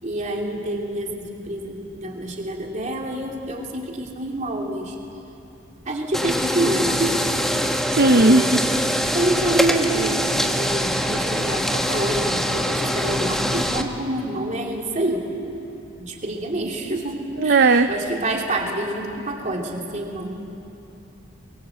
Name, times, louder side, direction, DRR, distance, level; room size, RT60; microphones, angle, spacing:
voice 1, 0.0-5.0 5.8-7.3 8.1-8.8 9.1-15.3 16.0-20.3, right 1 dB, 35° right, 0 dB, 3.1 m, -27 dB
sound 1, 6.1-13.8, equal, ahead, 1.2 m, -23 dB
voice 2, 7.9-8.5 17.4-17.9, right 3 dB, 50° right, 8 dB, 0.6 m, -15 dB
23.5 x 22.5 x 8.1 m, 2.8 s
head